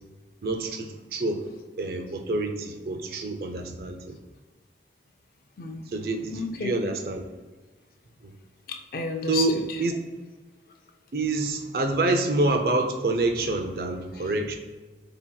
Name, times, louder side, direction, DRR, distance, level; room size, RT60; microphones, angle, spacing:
voice 1, 0.4-1.5 1.8-4.2 5.9-7.2 8.2-8.3 9.3-10.0 11.1-14.5, right 2 dB, 55° right, 5 dB, 0.5 m, -27 dB
voice 2, 5.6-5.9 6.3-6.8 8.7-9.6 14.2-14.3, left 4 dB, 55° left, 4 dB, 0.4 m, -32 dB
7.2 x 2.8 x 2.3 m, 1.3 s
head